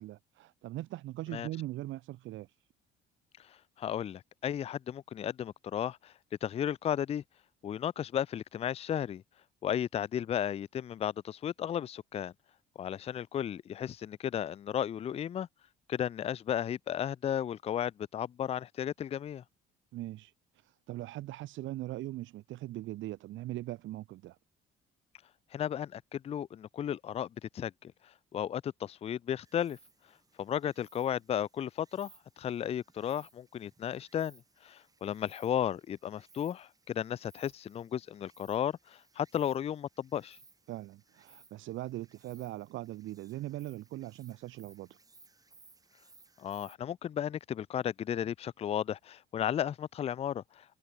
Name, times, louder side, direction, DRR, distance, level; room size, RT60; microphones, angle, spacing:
voice 1, 0.0-2.5 19.9-24.4 40.7-45.0, right 16 dB, 70° right, 1.2 m, -40 dB
voice 2, 3.4-6.1 6.4-7.2 7.6-9.2 9.6-12.3 12.8-15.5 15.9-19.4 25.5-29.8 30.4-32.1 32.4-40.4 46.4-50.8, left 10 dB, 30° left, 0.4 m, -34 dB
Insect, 29.4-46.8, right 3 dB, 15° right, 3.7 m, -62 dB
cardioid pair, 130°, 21 cm